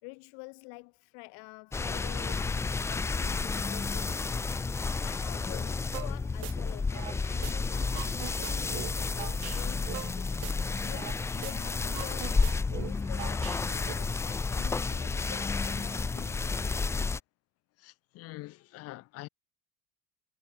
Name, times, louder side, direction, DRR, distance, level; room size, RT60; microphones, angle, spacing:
voice 1, 0.0-4.2 5.0-10.4 10.8-16.8, left 40 dB or more, 70° left, 3.9 m, -48 dB
sound 1, 1.7-17.2, left 4 dB, 10° left, 0.5 m, -31 dB
sound 2, 5.9-6.1 6.4-7.5 7.8-11.2 11.4-11.5 11.8-13.9, right 40 dB or more, 70° right, 4.6 m, -42 dB
voice 2, 17.8-19.3, left 19 dB, 40° left, 1.0 m, -45 dB
cardioid pair, 180°, 36 cm